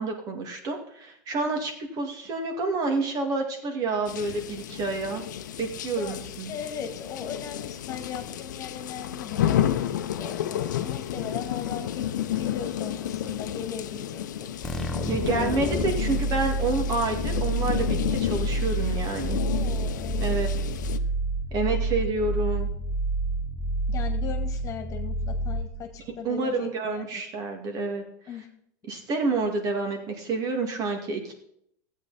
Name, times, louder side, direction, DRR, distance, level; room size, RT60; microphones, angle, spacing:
voice 1, 0.0-5.2 5.6-6.5 15.1-19.4 20.2-20.5 21.5-22.7 26.2-28.0 28.9-31.3, right 3 dB, 40° right, 4 dB, 2.2 m, -28 dB
sound 1, 4.1-21.0, left 11 dB, 85° left, 0.7 m, -31 dB
voice 2, 6.0-9.7 10.2-14.5 15.3-15.8 19.4-20.3 23.9-27.2 28.3-28.5, left 7 dB, 35° left, 5 dB, 1.9 m, -38 dB
sound 2, 14.6-26.1, right 2 dB, 5° left, 1.0 m, -29 dB
14.0 x 8.3 x 4.2 m, 0.71 s
supercardioid pair, 120°, 10 cm